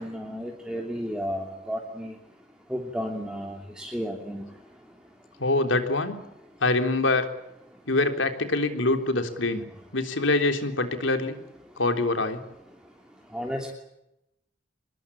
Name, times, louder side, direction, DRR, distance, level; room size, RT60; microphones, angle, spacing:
voice 1, 0.0-2.2 2.7-4.4 13.3-13.7, equal, 5° right, 1 dB, 3.0 m, -33 dB
voice 2, 5.4-6.2 6.6-7.3 7.9-9.7 9.9-11.4 11.8-12.4, left 2 dB, 90° left, 7 dB, 3.6 m, -24 dB
26.0 x 22.0 x 8.7 m, 0.87 s
head